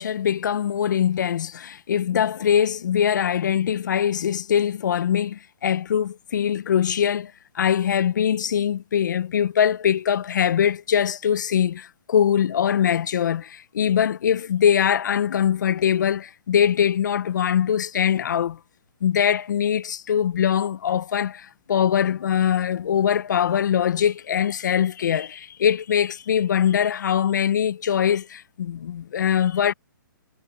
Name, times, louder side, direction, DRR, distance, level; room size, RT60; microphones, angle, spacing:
voice 1, 0.0-18.6 19.0-29.7, left 9 dB, 60° left, 1.0 m, -22 dB
hypercardioid pair, 165°, 12 cm